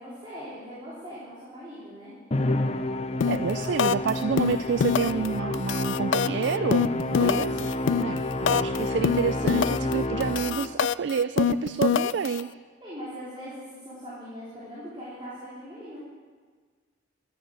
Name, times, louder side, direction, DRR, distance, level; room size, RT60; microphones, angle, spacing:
voice 1, 0.0-2.1 3.2-3.8 12.8-16.0, equal, 25° right, -9 dB, 3.8 m, -41 dB
Musical instrument, 2.3-10.9, left 2 dB, 35° left, 0.6 m, -29 dB
sound 1, 3.2-3.5 3.8-4.1 4.4-5.3 5.5-8.8 9.0-9.9 10.2-12.4, left 7 dB, 75° left, 0.3 m, -24 dB
voice 2, 3.2-12.5, right 6 dB, 65° right, 13 dB, 0.4 m, -29 dB
12.5 x 9.5 x 7.7 m, 1.5 s
head